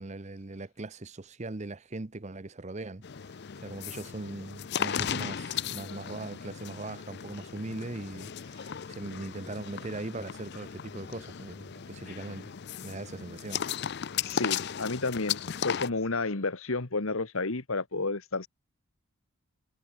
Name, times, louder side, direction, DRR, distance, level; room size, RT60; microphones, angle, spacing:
voice 1, 0.0-12.5 12.8-13.6, right 2 dB, 30° right, 0.8 m, -40 dB
sound 1, 3.0-15.9, left 8 dB, 50° left, 0.5 m, -36 dB
voice 2, 14.2-18.5, left 3 dB, 70° left, 1.5 m, -31 dB
head